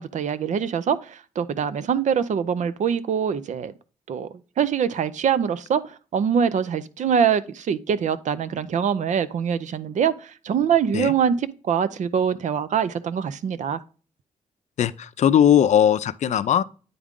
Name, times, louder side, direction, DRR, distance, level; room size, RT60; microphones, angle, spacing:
voice 1, 0.0-3.7 4.1-4.3 4.6-13.8, right 7 dB, 65° right, 0.5 m, -24 dB
voice 2, 14.8-16.6, left 9 dB, 65° left, 0.4 m, -19 dB
9.3 x 3.7 x 3.6 m
cardioid pair, 75°, 13 cm